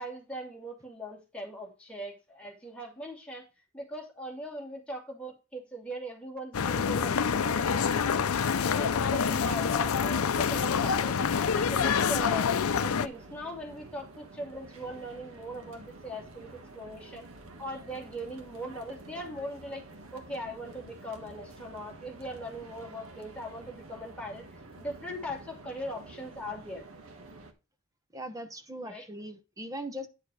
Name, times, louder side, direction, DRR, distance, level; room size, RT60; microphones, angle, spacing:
voice 1, 0.0-3.5 3.7-8.3 8.7-12.5 12.8-17.3 17.6-19.8 20.1-26.9 28.8-29.1, equal, 5° left, 2.4 m, -40 dB
sound 1, 6.5-13.1, left 6 dB, 80° left, 0.5 m, -27 dB
sound 2, 12.7-27.5, right 2 dB, 70° right, 1.5 m, -49 dB
voice 2, 28.1-30.1, equal, 15° right, 0.8 m, -40 dB
9.8 x 4.6 x 4.8 m
head